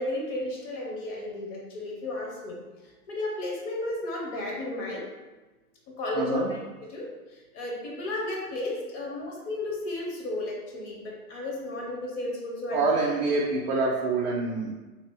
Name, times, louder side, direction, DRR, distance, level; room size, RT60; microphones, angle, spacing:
voice 1, 0.0-2.6 3.1-5.0 5.9-6.4 6.9-7.1 7.5-12.8, left 1 dB, 35° left, -2 dB, 0.9 m, -33 dB
voice 2, 6.1-6.6 12.7-14.7, right 3 dB, 40° right, -3 dB, 0.5 m, -26 dB
2.8 x 2.4 x 3.4 m, 1.2 s
hypercardioid pair, 110°, 45 cm